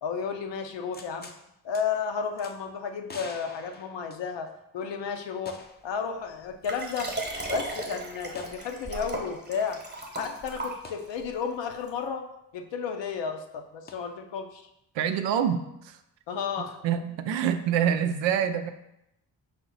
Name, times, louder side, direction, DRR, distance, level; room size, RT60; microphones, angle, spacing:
voice 1, 0.0-1.3 1.6-4.5 4.7-7.1 7.5-9.8 10.1-12.3 12.5-14.6 16.3-16.8, left 6 dB, 65° left, 5 dB, 0.7 m, -32 dB
sound 1, 0.9-1.4 1.7-1.8 2.4-2.5 3.1-4.6 5.5-5.9 6.2-6.3 8.3-8.6 10.8-11.0 13.9-14.0, left 3 dB, 20° left, 0.5 m, -45 dB
Liquid, 6.6-11.2 11.9-12.0, right 2 dB, 20° right, 1.1 m, -35 dB
voice 2, 15.0-16.0 16.8-18.7, right 8 dB, 65° right, 9 dB, 0.5 m, -26 dB
5.1 x 2.0 x 3.9 m, 0.84 s
supercardioid pair, 45°, 48 cm